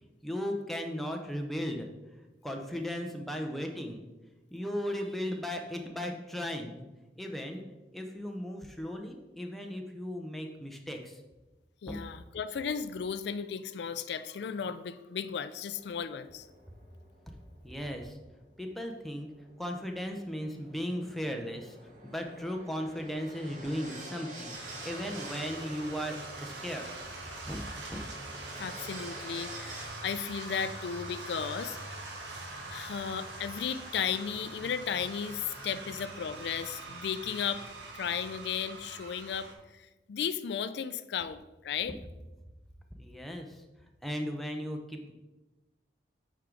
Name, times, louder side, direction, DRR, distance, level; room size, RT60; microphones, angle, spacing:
voice 1, 0.2-4.0 4.5-6.9 7.2-7.6 7.9-11.2 11.9-12.0 17.6-18.2 18.6-19.3 19.6-26.9 27.3-27.6 27.9-28.0 43.0-43.6 44.0-45.1, equal, ahead, 2 dB, 0.6 m, -36 dB
voice 2, 11.8-16.5 28.6-32.0 32.7-37.6 37.9-42.0, left 7 dB, 75° left, 13 dB, 0.4 m, -35 dB
sound 1, 15.7-29.9, right 1 dB, 45° right, 1.3 m, -49 dB
sound 2, 24.5-39.5, right 2 dB, 85° right, 1.2 m, -43 dB
8.3 x 4.6 x 3.8 m, 1.1 s
head